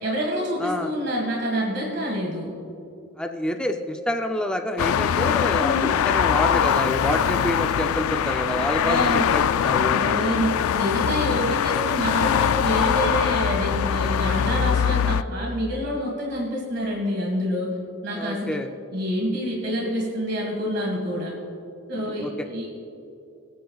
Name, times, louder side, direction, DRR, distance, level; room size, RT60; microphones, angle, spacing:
voice 1, 0.0-2.5 5.6-6.0 8.8-9.3 9.9-17.8 18.0-18.6 18.9-21.3 21.9-22.7, equal, 50° right, -2 dB, 1.9 m, -27 dB
voice 2, 0.6-0.9 3.2-10.2 18.1-18.7 22.2-22.3, left 1 dB, 5° left, 4 dB, 0.5 m, -27 dB
sound 1, 4.8-15.2, left 8 dB, 80° left, 0.3 m, -22 dB
25.5 x 9.3 x 2.3 m, 2.7 s
head